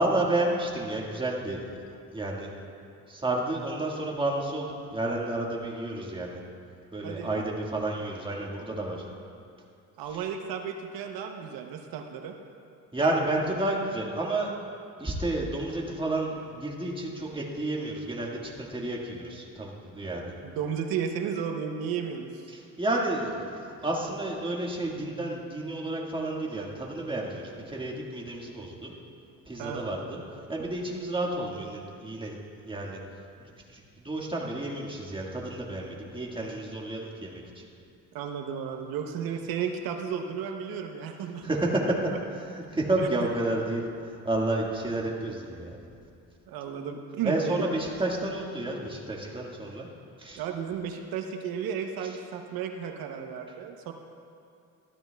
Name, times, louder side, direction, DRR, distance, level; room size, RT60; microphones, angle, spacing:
voice 1, 0.0-1.6 2.1-2.5 3.1-6.4 6.9-9.0 12.9-14.5 15.0-20.3 22.5-23.5 23.8-28.9 29.5-30.2 30.5-32.4 32.6-33.0 33.7-37.6 41.4-42.1 42.5-45.7 47.2-49.9 50.2-50.4, right 2 dB, 15° right, -2 dB, 1.7 m, -30 dB
voice 2, 7.0-7.4 10.0-12.4 20.2-22.5 29.6-29.9 38.1-41.7 43.0-43.1 46.5-47.6 50.4-53.9, right 7 dB, 80° right, 4 dB, 0.8 m, -34 dB
14.0 x 13.0 x 2.3 m, 2.4 s
cardioid pair, 90°, 35 cm